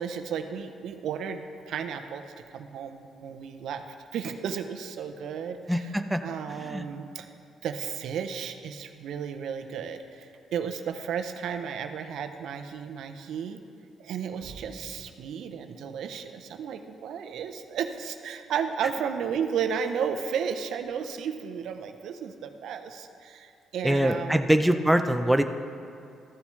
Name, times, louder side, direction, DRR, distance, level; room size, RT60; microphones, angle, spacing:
voice 1, 0.0-2.2 2.5-3.8 4.1-5.9 6.2-7.3 7.6-13.6 14.0-24.5, right 7 dB, 75° right, 7 dB, 0.6 m, -33 dB
voice 2, 5.7-6.2 6.5-6.9 23.8-25.4, equal, 5° right, 7 dB, 0.4 m, -23 dB
14.0 x 7.1 x 3.2 m, 2.5 s
cardioid pair, 90°, 0 cm